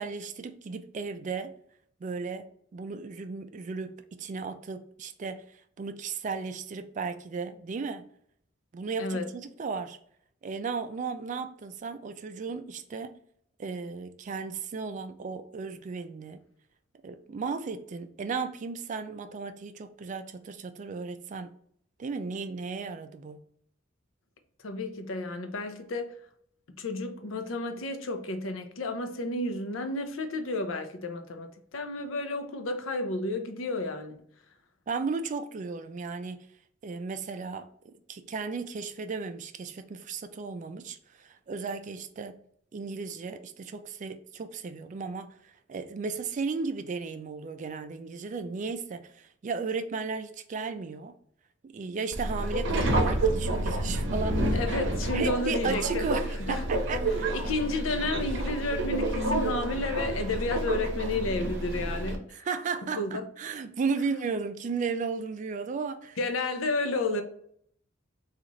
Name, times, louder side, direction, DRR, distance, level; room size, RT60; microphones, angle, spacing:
voice 1, 0.0-1.5 2.0-5.4 5.8-8.1 8.7-10.0 10.4-13.1 13.6-16.4 17.0-21.5 22.0-23.4 34.9-36.5 36.8-42.4 42.7-45.4 45.7-51.1 51.6-54.6 55.1-57.3 62.4-66.2, right 4 dB, 40° right, 0.3 m, -35 dB
voice 2, 9.0-9.3 24.6-26.1 26.8-34.2 54.5-56.1 56.4-56.6 57.3-62.5 62.9-63.3 66.2-67.2, left 2 dB, 75° left, 0.6 m, -31 dB
Subway metro underground, 52.1-62.2, right 1 dB, 65° right, 0.7 m, -29 dB
3.8 x 2.4 x 3.1 m
head